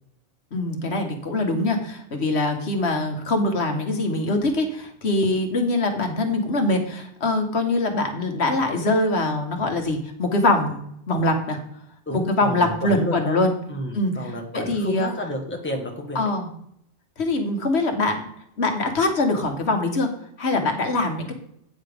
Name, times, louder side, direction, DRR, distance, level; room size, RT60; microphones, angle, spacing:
voice 1, 0.5-11.6 12.1-13.5 13.9-15.1 16.1-16.5 17.2-18.3 18.6-20.1 20.4-21.3, left 2 dB, 70° left, 4 dB, 1.5 m, -23 dB
voice 2, 12.1-13.4 13.7-16.2 21.3-21.4, left 1 dB, 10° left, 2 dB, 1.3 m, -30 dB
8.9 x 8.7 x 3.5 m, 0.70 s
omnidirectional pair, 1.2 m